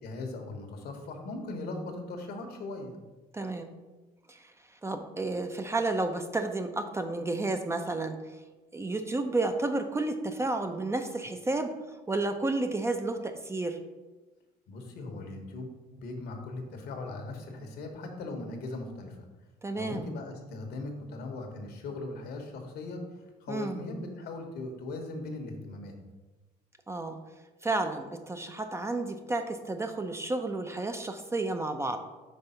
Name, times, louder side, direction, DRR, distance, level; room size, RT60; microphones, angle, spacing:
voice 1, 0.0-3.0 14.7-19.2 19.7-23.1 23.4-25.9, left 2 dB, 70° left, 4 dB, 1.1 m, -39 dB
voice 2, 3.3-3.7 4.3-4.4 4.8-8.2 8.7-11.8 12.1-13.8 19.6-20.1 23.5-23.8 26.9-27.2 27.6-32.0, right 2 dB, 15° right, 7 dB, 0.4 m, -31 dB
5.4 x 3.5 x 5.5 m, 1.2 s
cardioid pair, 110°, 17 cm